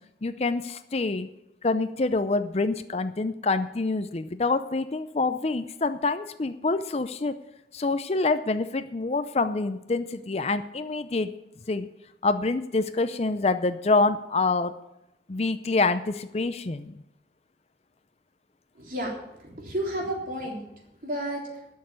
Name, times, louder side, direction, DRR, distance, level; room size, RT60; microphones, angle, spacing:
voice 1, 0.2-1.3 1.6-7.4 7.7-11.3 11.7-11.9 12.2-14.7 15.3-17.0, left 3 dB, 35° left, 11 dB, 0.5 m, -26 dB
voice 2, 18.7-20.6 21.0-21.4, right 1 dB, 50° right, -1 dB, 3.5 m, -32 dB
12.0 x 6.7 x 9.5 m, 0.87 s
head